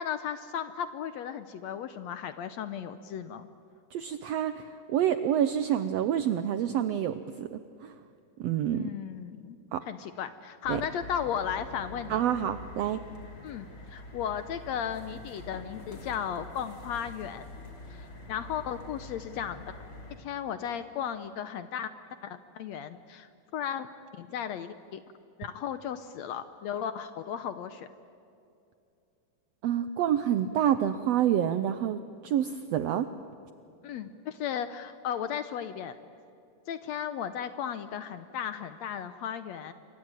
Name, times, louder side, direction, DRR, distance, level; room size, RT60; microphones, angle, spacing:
voice 1, 0.0-3.5 8.7-9.6 9.9-12.2 13.4-17.6 17.9-19.7 20.1-21.9 22.2-23.9 24.1-25.0 25.4-27.9 33.8-35.9 36.7-39.7, left 8 dB, 75° left, 11 dB, 1.7 m, -35 dB
voice 2, 3.9-7.9 8.4-8.9 9.7-9.8 10.7-10.8 12.1-13.0 29.6-33.1, right 10 dB, 80° right, 11 dB, 1.5 m, -28 dB
sound 1, 10.6-20.2, left 2 dB, 40° left, 3.8 m, -45 dB
27.5 x 23.5 x 8.9 m, 2.6 s
omnidirectional pair, 3.8 m